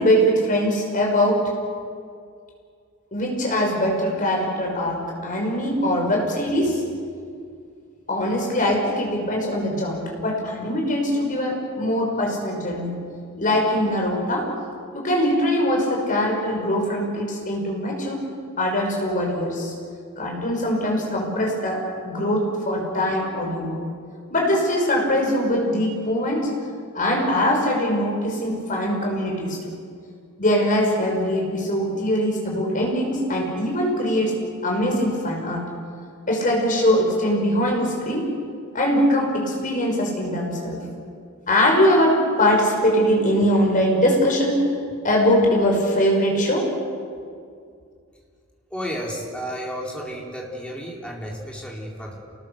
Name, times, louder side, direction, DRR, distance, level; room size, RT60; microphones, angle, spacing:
voice 1, 0.0-1.4 3.1-6.8 8.1-12.9 13.4-14.5 14.9-18.2 18.6-19.7 20.2-23.8 24.3-26.5 26.9-29.6 30.4-35.7 36.3-38.3 38.7-40.8 41.5-44.6 45.0-46.7, equal, 40° left, 0 dB, 5.8 m, -22 dB
voice 2, 48.7-52.2, equal, 5° left, -2 dB, 4.1 m, -32 dB
28.5 x 19.5 x 6.7 m, 2.3 s
head